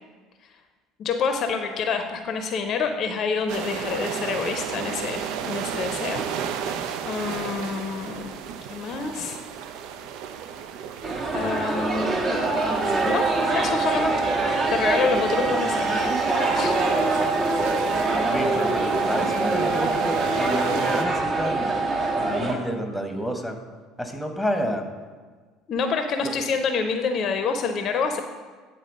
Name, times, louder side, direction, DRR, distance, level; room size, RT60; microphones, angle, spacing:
voice 1, 1.0-8.3 8.7-9.4 11.3-14.3 14.7-16.0 16.5-16.9 25.7-28.2, left 5 dB, 45° left, 7 dB, 0.7 m, -28 dB
sound 1, 3.5-21.1, right 8 dB, 60° right, 0.5 m, -34 dB
sound 2, 11.0-22.5, right 2 dB, 35° right, 1.5 m, -25 dB
sound 3, 12.7-22.3, right 3 dB, 80° right, 1.9 m, -29 dB
voice 2, 18.2-21.7 22.2-23.6 24.0-24.8 26.2-26.3, equal, ahead, 4 dB, 1.3 m, -29 dB
9.2 x 4.3 x 6.5 m, 1.4 s
figure-of-eight pair, 60°, 0 cm